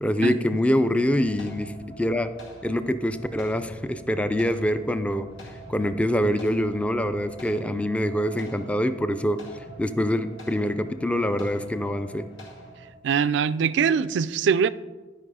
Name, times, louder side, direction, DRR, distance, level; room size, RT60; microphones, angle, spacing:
voice 1, 0.0-2.3 2.6-5.3 5.7-9.4 9.8-12.3, equal, 5° left, 10 dB, 0.4 m, -25 dB
sound 1, 1.0-12.9, equal, 80° left, 2.1 m, -45 dB
voice 2, 13.0-14.7, right 6 dB, 70° right, 16 dB, 0.3 m, -22 dB
11.5 x 5.3 x 4.9 m, 1.3 s
head